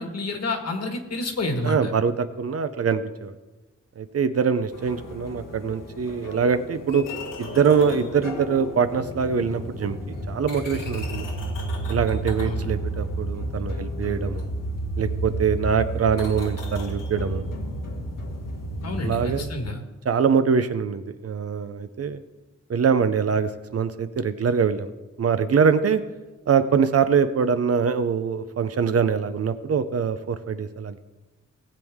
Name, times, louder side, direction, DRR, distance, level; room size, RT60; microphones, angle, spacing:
voice 1, 0.0-1.9 12.4-12.7 18.8-19.8, left 2 dB, 55° left, 4 dB, 1.6 m, -29 dB
voice 2, 1.6-3.3 4.0-7.1 7.4-11.2 11.9-14.5 15.0-17.4 19.0-19.5 20.1-22.2 22.7-24.9 25.2-26.0 26.5-31.0, right 6 dB, 50° right, 11 dB, 0.6 m, -23 dB
sound 1, 4.7-19.4, right 1 dB, 85° left, 1.7 m, -32 dB
19.0 x 8.1 x 3.6 m, 1.1 s
wide cardioid pair, 155°, 31 cm